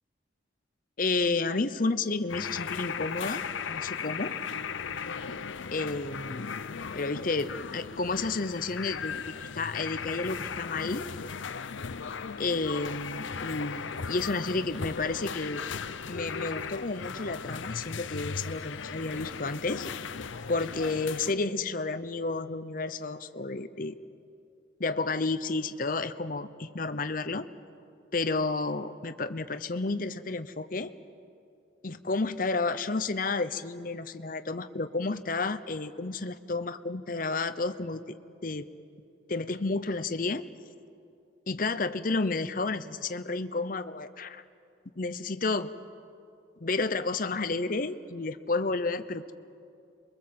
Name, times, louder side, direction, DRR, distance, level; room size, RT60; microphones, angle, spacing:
voice 1, 1.0-4.4 5.7-6.6 6.9-11.1 12.4-15.6 16.1-19.9 20.5-23.9 24.8-27.5 28.1-30.9 31.8-38.2 38.4-38.7 39.3-40.4 41.5-44.4 45.0-45.7 46.6-49.3, left 3 dB, 45° left, 10 dB, 0.8 m, -31 dB
sound 1, 2.3-21.3, left 6 dB, 80° left, 0.7 m, -37 dB
27.5 x 22.5 x 7.7 m, 2.4 s
head